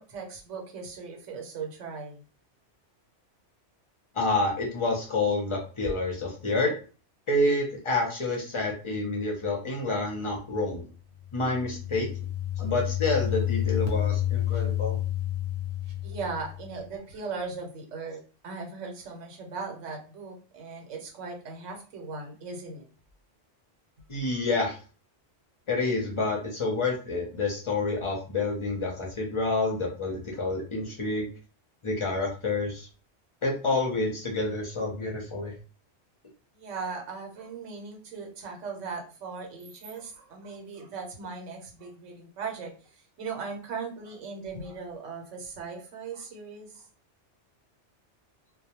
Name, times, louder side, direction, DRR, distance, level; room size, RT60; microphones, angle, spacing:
voice 1, 0.0-2.2 16.0-22.8 36.5-42.7 43.2-46.9, right 4 dB, 90° right, 2 dB, 1.1 m, -38 dB
voice 2, 4.1-6.7 7.3-10.9 11.3-12.1 12.6-15.0 24.1-24.8 25.7-31.3 31.8-32.9 33.4-35.5, left 2 dB, 40° left, 0 dB, 0.4 m, -28 dB
sound 1, 11.2-16.9, left 11 dB, 70° right, 0.9 m, -30 dB
2.2 x 2.1 x 2.8 m, 0.36 s
omnidirectional pair, 1.2 m